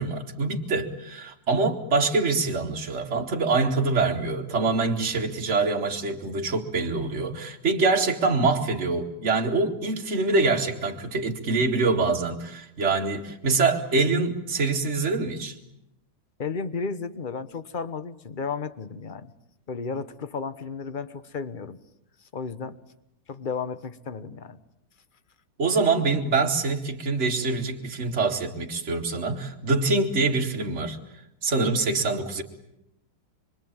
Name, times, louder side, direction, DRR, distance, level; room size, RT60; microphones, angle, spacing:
voice 1, 0.0-15.5 25.6-31.0 31.4-32.4, right 3 dB, 40° right, 0 dB, 2.5 m, -25 dB
voice 2, 16.4-19.3 19.7-21.8 22.3-22.8 23.3-24.6, left 5 dB, 35° left, 13 dB, 1.1 m, -33 dB
26.0 x 24.5 x 9.0 m, 0.81 s
omnidirectional pair, 1.9 m